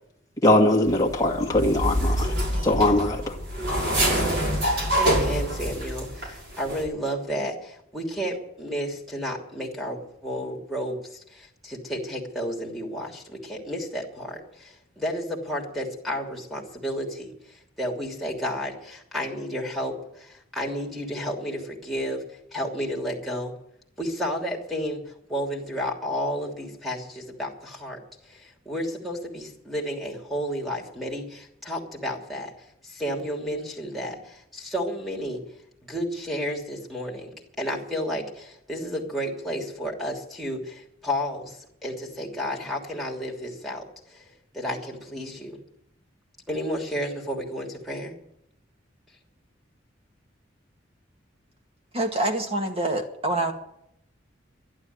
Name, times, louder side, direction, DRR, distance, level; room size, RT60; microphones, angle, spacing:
voice 1, 0.4-2.3 2.6-3.4, left 1 dB, 15° left, 0 dB, 2.0 m, -21 dB
sound 1, 0.8-6.3 6.5-6.8, equal, 60° right, 6.0 m, -26 dB
voice 2, 5.0-6.1 6.6-7.5 7.9-11.0 11.7-13.1 13.5-14.3 15.0-17.3 17.8-18.7 19.1-19.9 20.5-21.6 21.8-22.2 22.5-23.5 24.0-25.0 25.3-27.0 27.4-27.5 27.8-28.0 28.7-31.2 31.7-32.5 33.0-34.1 34.7-35.4 35.9-37.3 37.6-38.2 38.7-40.6 41.0-41.4 41.8-43.8 44.6-45.5 46.5-48.1, equal, ahead, -3 dB, 3.1 m, -31 dB
voice 3, 51.9-53.5, right 2 dB, 30° right, 4 dB, 2.0 m, -26 dB
12.0 x 11.5 x 9.6 m, 0.77 s
head